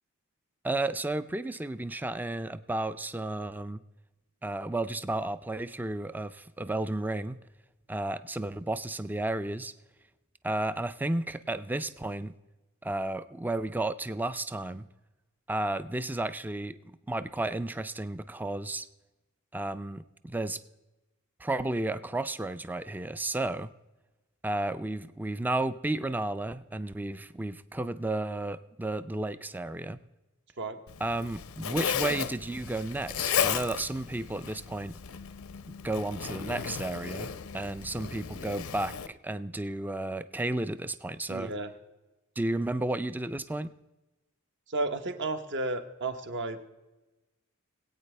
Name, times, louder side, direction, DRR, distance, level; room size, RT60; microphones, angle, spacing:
voice 1, 0.6-3.8 4.4-7.4 7.9-9.7 10.4-12.3 12.8-14.9 15.5-18.9 19.5-20.6 21.4-23.7 24.4-30.0 31.0-34.9 35.8-41.5 42.4-43.7, right 2 dB, 10° right, 13 dB, 0.3 m, -33 dB
Zipper (clothing), 30.9-39.1, left 8 dB, 75° left, 0.6 m, -34 dB
voice 2, 41.3-41.7 44.7-46.6, right 2 dB, 55° right, 7 dB, 1.0 m, -32 dB
20.5 x 8.8 x 3.3 m, 1.1 s
head